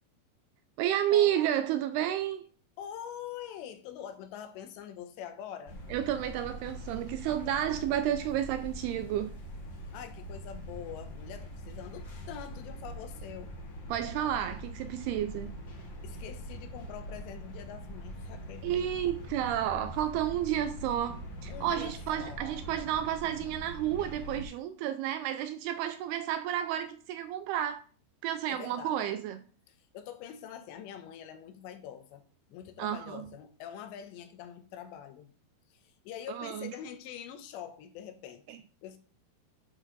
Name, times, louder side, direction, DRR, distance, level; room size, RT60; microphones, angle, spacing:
voice 1, 0.8-2.5 5.9-9.4 13.9-15.5 18.6-27.8 28.2-29.4 32.8-33.3 36.3-36.7 38.5-38.6, right 11 dB, 85° right, 2.3 m, -31 dB
voice 2, 2.8-5.8 9.9-13.6 16.0-18.8 21.5-22.4 28.5-29.0 29.7-32.2 32.5-35.3 35.7-38.4 38.8-39.0, left 9 dB, 90° left, 3.1 m, -44 dB
sound 1, 5.7-24.4, equal, 50° left, 1.4 m, -43 dB
10.0 x 6.1 x 4.1 m
omnidirectional pair, 5.0 m